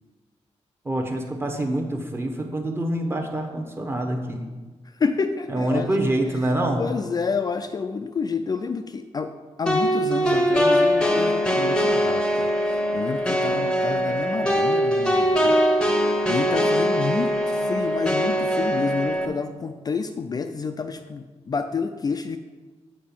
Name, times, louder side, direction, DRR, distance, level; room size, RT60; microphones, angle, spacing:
voice 1, 0.8-4.5 5.5-6.8, right 1 dB, 20° right, 4 dB, 0.9 m, -26 dB
voice 2, 4.9-5.9 6.8-9.3 9.6-15.6 16.1-22.4, left 5 dB, 35° left, 7 dB, 0.4 m, -29 dB
sound 1, 9.7-19.3, equal, 5° left, 0.8 m, -22 dB
7.4 x 5.1 x 6.9 m, 1.3 s
wide cardioid pair, 170°, 12 cm